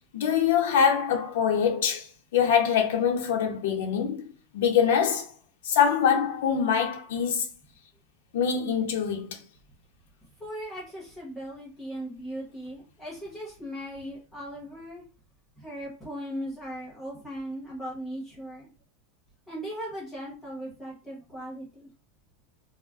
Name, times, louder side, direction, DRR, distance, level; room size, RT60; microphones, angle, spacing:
voice 1, 0.1-2.1 2.3-5.3 5.6-7.5 8.3-9.4, left 7 dB, 75° left, 0.7 m, -24 dB
voice 2, 10.4-15.0 15.6-18.7 19.5-21.9, equal, 5° left, 1.0 m, -38 dB
2.4 x 2.1 x 3.5 m
supercardioid pair, 180°, 0 cm